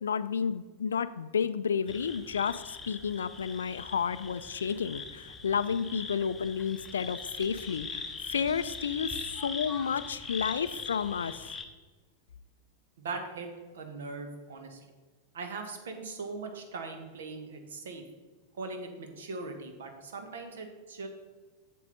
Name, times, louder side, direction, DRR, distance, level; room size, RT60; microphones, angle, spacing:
voice 1, 0.0-11.5, left 6 dB, 70° left, 15 dB, 0.3 m, -31 dB
sound 1, 1.9-11.6, left 4 dB, 15° left, 0.8 m, -41 dB
voice 2, 13.0-13.5 13.7-14.8 15.3-18.0 18.6-21.1, right 3 dB, 60° right, 5 dB, 1.3 m, -40 dB
7.6 x 7.4 x 4.0 m, 1.4 s
figure-of-eight pair, 90°, 0 cm